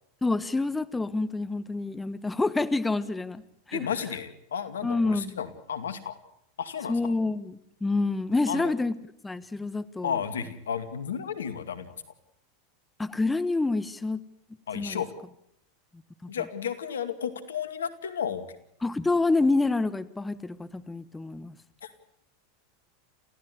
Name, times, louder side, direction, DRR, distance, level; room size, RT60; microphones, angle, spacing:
voice 1, 0.2-3.4 3.7-3.9 4.8-5.4 6.9-8.9 9.2-10.1 13.0-14.2 14.7-15.0 18.8-21.5, left 3 dB, 10° left, 14 dB, 1.2 m, -27 dB
voice 2, 3.7-6.2 6.6-7.1 8.5-8.7 10.0-11.9 14.7-15.1 16.3-18.4 21.8-22.1, left 7 dB, 85° left, 11 dB, 2.2 m, -33 dB
28.5 x 15.5 x 8.0 m, 0.74 s
hypercardioid pair, 95°, 0 cm